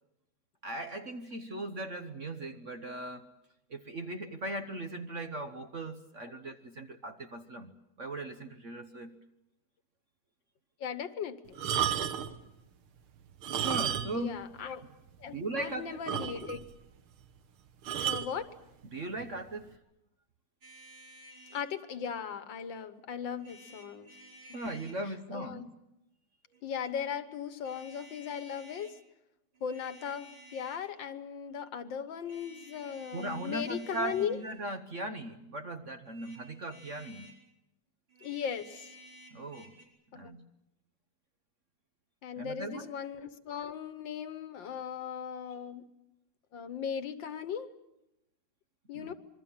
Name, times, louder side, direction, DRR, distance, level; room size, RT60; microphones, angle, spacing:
voice 1, 0.6-3.3 3.7-9.1 13.6-14.4 15.3-16.0 18.9-19.8 24.5-25.7 33.1-37.3 39.3-39.7 40.1-40.5 42.4-42.9 48.9-49.1, right 2 dB, 45° right, 7 dB, 1.1 m, -38 dB
voice 2, 10.8-11.6 14.2-14.8 15.2-16.6 18.1-18.5 21.5-24.1 25.3-25.7 26.6-29.0 29.6-34.4 38.2-39.0 40.1-40.3 42.2-45.8 46.5-47.7 48.9-49.1, left 7 dB, 65° left, 12 dB, 1.8 m, -38 dB
sound 1, 11.5-12.4 13.3-14.3 14.6-14.7 15.2-15.3 15.6-15.7 16.1-16.7 17.9-18.3 19.2-19.4, right 9 dB, 90° right, 2.1 m, -32 dB
sound 2, 20.6-21.7 23.4-25.0 26.5-26.9 27.6-29.0 29.5-30.9 32.2-34.7 36.0-37.4 38.1-39.8, right 1 dB, 70° right, 6.2 m, -54 dB
27.0 x 22.5 x 7.3 m, 0.87 s
omnidirectional pair, 2.3 m